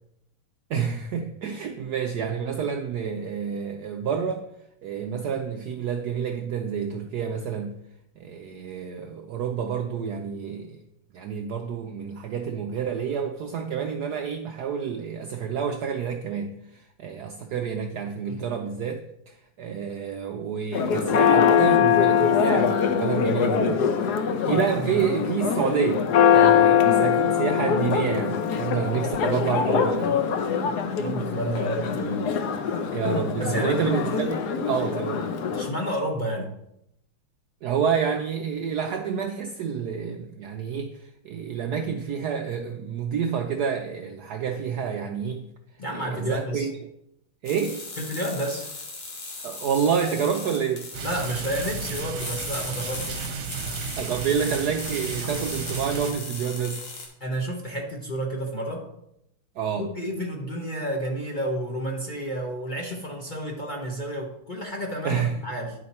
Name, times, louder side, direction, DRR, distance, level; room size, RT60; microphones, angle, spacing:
voice 1, 0.7-4.4 4.8-7.7 8.2-10.8 11.1-23.8 24.5-30.2 32.9-35.2 37.6-45.5 45.9-46.7 47.4-47.8 49.4-50.9 54.0-56.8 59.6-59.9 65.0-65.4, right 7 dB, 85° right, 0.8 m, -28 dB
Church bell, 20.7-35.7, left 7 dB, 65° left, 1.1 m, -22 dB
voice 2, 31.0-32.3 33.4-33.8 35.6-36.5 45.8-46.7 48.0-48.7 51.0-53.2 57.2-58.9 59.8-65.7, right 1 dB, 45° left, 0.6 m, -31 dB
sound 1, 47.5-57.1, left 3 dB, 90° left, 2.7 m, -37 dB
sound 2, 50.9-56.1, right 5 dB, 65° right, 1.1 m, -33 dB
10.5 x 5.1 x 4.2 m
omnidirectional pair, 2.4 m